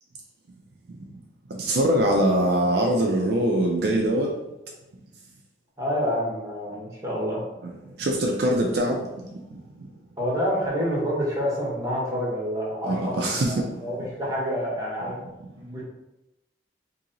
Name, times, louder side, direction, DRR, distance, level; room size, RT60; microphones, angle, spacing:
voice 1, 1.6-4.3 8.0-9.0 12.8-13.5, right 1 dB, 60° right, 0 dB, 0.5 m, -22 dB
voice 2, 5.8-7.4 10.2-15.3 15.6-15.8, equal, 20° right, -5 dB, 1.1 m, -28 dB
2.9 x 2.8 x 3.8 m, 0.96 s
head